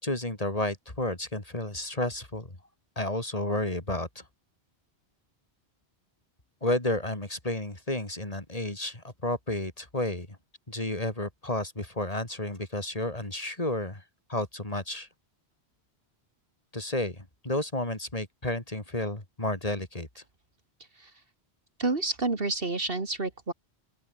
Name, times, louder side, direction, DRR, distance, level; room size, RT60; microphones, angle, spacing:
voice 1, 0.0-2.6 3.0-4.2 6.6-10.4 10.7-14.0 14.3-15.1 16.7-20.2, left 1 dB, 35° left, 3.5 m, -31 dB
voice 2, 21.8-23.5, right 3 dB, 60° right, 2.6 m, -29 dB
open air
omnidirectional pair, 1.1 m